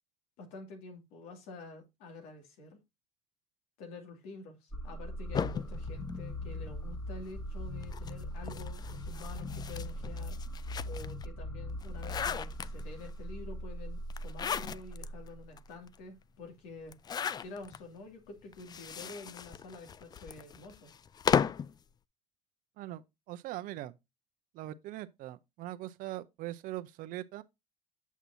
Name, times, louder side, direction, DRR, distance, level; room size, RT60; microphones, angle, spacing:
voice 1, 0.4-2.8 3.8-10.4 10.8-17.0 17.4-20.9, left 3 dB, 80° left, 2.4 m, -48 dB
sound 1, 4.7-15.6, equal, 10° left, 1.5 m, -40 dB
sound 2, 5.3-6.9 7.8-11.2 11.7-13.1 14.1-15.1 15.6-15.7 15.9-16.0 16.9-17.8 18.5-21.7, left 7 dB, 30° left, 0.3 m, -35 dB
voice 2, 22.8-24.0 24.5-27.4, right 15 dB, 70° right, 0.7 m, -41 dB
8.2 x 6.0 x 2.7 m
supercardioid pair, 100°, 15 cm